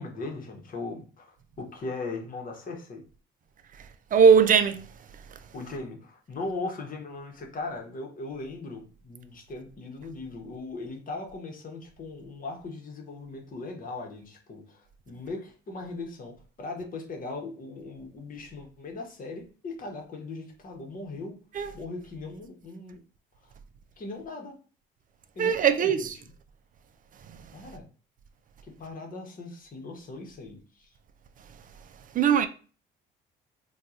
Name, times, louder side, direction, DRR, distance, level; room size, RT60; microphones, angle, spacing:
voice 1, 0.0-3.0 5.5-21.4 21.7-23.0 24.0-24.5 25.3-26.3 27.5-27.9 28.6-30.9, left 3 dB, 40° left, 1.0 m, -39 dB
voice 2, 4.1-4.9 21.6-21.7 25.4-26.1 27.3-27.4 32.1-32.5, right 7 dB, 40° right, 0.4 m, -20 dB
2.8 x 2.3 x 3.6 m
cardioid pair, 95°, 21 cm